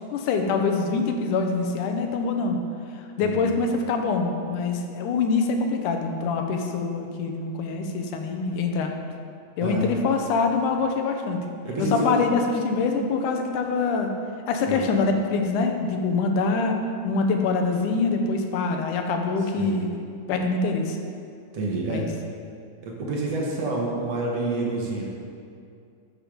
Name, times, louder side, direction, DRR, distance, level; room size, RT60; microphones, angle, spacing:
voice 1, 0.1-2.6 3.2-8.9 9.6-11.4 11.8-14.1 14.5-16.8 17.0-19.9 20.3-21.0 21.9-22.1, left 4 dB, 90° left, 4 dB, 2.4 m, -24 dB
voice 2, 3.2-3.5 9.6-9.9 11.6-12.2 14.7-14.8 19.5-19.8 21.5-22.2 22.8-25.0, right 2 dB, 60° right, -2 dB, 2.3 m, -28 dB
12.5 x 6.9 x 5.0 m, 2.4 s
omnidirectional pair, 3.5 m